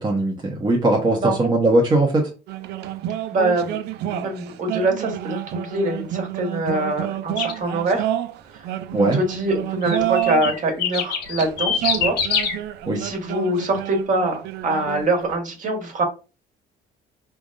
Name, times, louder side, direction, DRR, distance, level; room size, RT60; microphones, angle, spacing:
voice 1, 0.0-2.3 8.9-9.2 12.9-13.0, right 2 dB, 25° right, -1 dB, 1.0 m, -19 dB
sound 1, 2.5-10.6 11.2-15.3, right 13 dB, 80° right, 0.5 m, -29 dB
voice 2, 3.3-3.8 4.1-8.1 8.5-8.6 9.0-12.1 13.0-16.0, right 2 dB, 50° right, 3 dB, 1.6 m, -24 dB
sound 2, 7.4-7.6 9.8-12.6, left 7 dB, 80° left, 1.5 m, -24 dB
5.1 x 3.4 x 2.6 m, 0.31 s
cardioid pair, 110°, 17 cm